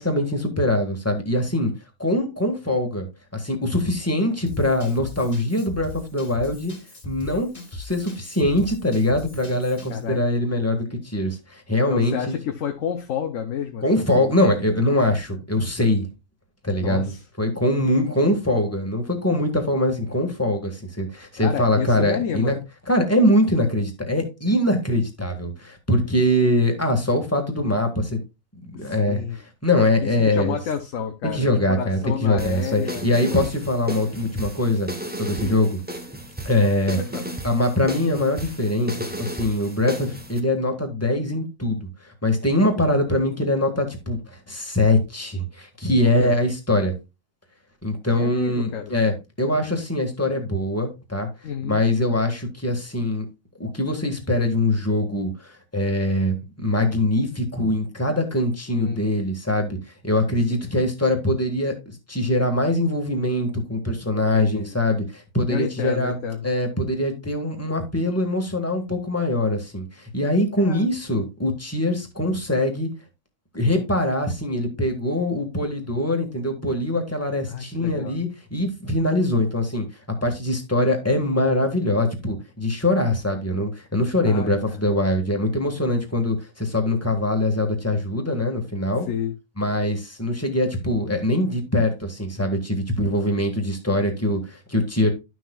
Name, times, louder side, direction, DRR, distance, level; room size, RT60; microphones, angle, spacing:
voice 1, 0.0-1.7 2.0-3.1 3.3-6.7 7.0-12.2 13.8-16.1 16.6-17.1 17.4-22.6 22.9-28.2 28.8-30.5 31.2-34.9 35.2-35.8 36.4-37.0 37.4-46.9 47.8-51.3 51.6-53.2 53.6-59.8 60.0-66.2 66.4-72.9 73.5-79.9 80.2-89.1 89.6-95.1, left 1 dB, 10° left, 1.7 m, -23 dB
Drum kit / Drum, 4.5-10.0, left 2 dB, 30° left, 1.8 m, -39 dB
voice 2, 9.9-10.2 11.9-14.3 16.8-17.2 21.4-22.6 28.7-29.4 30.0-33.4 35.4-35.7 37.0-37.2 46.0-46.4 48.2-48.9 51.4-51.9 58.7-59.1 60.6-60.7 64.3-64.8 65.5-66.5 70.6-70.9 77.5-78.2 84.2-84.8 89.1-89.4, left 8 dB, 75° left, 1.2 m, -30 dB
sound 1, 32.4-40.4, right 1 dB, 10° right, 0.8 m, -34 dB
12.0 x 6.1 x 2.3 m
omnidirectional pair, 1.4 m